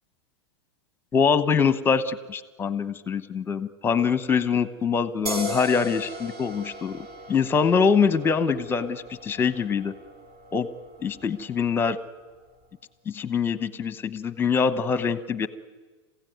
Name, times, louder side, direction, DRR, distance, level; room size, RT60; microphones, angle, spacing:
voice 1, 1.1-9.9 10.5-10.7 11.0-12.0 13.1-15.5, left 6 dB, 15° left, 14 dB, 1.0 m, -24 dB
sound 1, 5.3-12.6, equal, 40° right, 3.9 m, -39 dB
28.0 x 16.0 x 9.4 m, 1.3 s
supercardioid pair, 140°, 15 cm